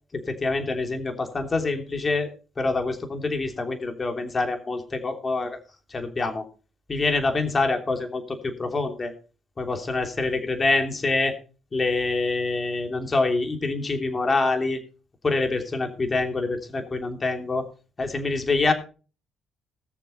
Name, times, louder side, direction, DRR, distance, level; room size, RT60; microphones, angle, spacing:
voice 1, 0.1-2.3 2.6-5.6 5.9-6.4 6.9-9.1 9.6-11.4 11.7-14.8 15.2-17.7 18.0-18.7, left 3 dB, 30° left, 5 dB, 3.1 m, -26 dB
19.5 x 7.0 x 4.3 m, 0.36 s
cardioid pair, 90°, 0 cm